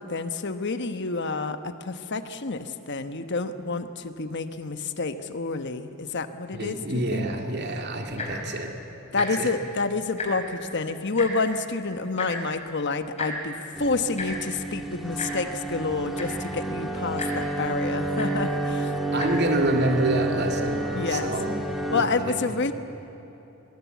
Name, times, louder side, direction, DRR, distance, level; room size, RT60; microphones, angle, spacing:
voice 1, 0.0-7.3 9.1-19.0 20.9-21.3 21.9-22.7, left 3 dB, 55° left, 9 dB, 1.2 m, -29 dB
voice 2, 6.5-8.7 9.2-9.5 19.1-21.5 21.9-22.5, right 1 dB, 50° right, 3 dB, 2.5 m, -27 dB
Tick-tock, 8.1-8.4 9.1-9.3 9.6-9.7 10.0-10.5 11.2-11.3 12.2-12.3 13.2-13.3 14.2-14.3 15.2-15.3 15.9-16.0 16.1-16.5 17.2-17.3 18.2-18.3 19.1-19.3 20.0-20.1, left 4 dB, 30° left, 4.9 m, -33 dB
sound 1, 13.7-22.0, right 2 dB, ahead, 1.9 m, -30 dB
23.0 x 21.5 x 8.3 m, 3.0 s
head